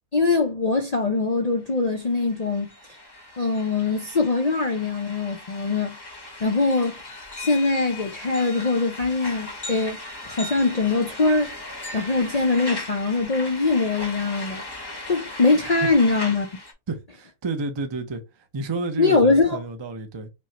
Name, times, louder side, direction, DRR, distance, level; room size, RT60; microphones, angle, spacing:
voice 1, 0.1-2.7 3.4-6.0 6.4-6.9 7.4-10.0 10.3-14.6 15.1-16.5 19.0-19.6, left 3 dB, 60° left, 0.4 m, -22 dB
sound 1, 1.7-1.8 2.0-16.7, left 2 dB, 20° left, 0.7 m, -38 dB
voice 2, 16.9-20.3, right 3 dB, 35° right, 0.4 m, -31 dB
5.3 x 2.2 x 2.8 m
omnidirectional pair, 1.5 m